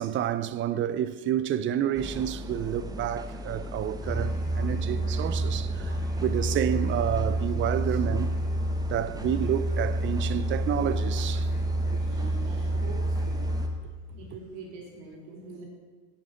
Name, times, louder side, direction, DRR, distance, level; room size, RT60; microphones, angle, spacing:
voice 1, 0.0-5.9 6.2-8.3 8.9-11.5, right 10 dB, 40° right, 0.6 m, -29 dB
sound 1, 1.9-13.7, left 1 dB, 10° right, 0.9 m, -38 dB
Musical instrument, 4.0-14.0, right 1 dB, 25° left, 3.5 m, -29 dB
voice 2, 12.0-13.6 14.1-15.6, right 4 dB, 70° right, 3.5 m, -44 dB
8.3 x 8.0 x 6.8 m
supercardioid pair, 120°, 32 cm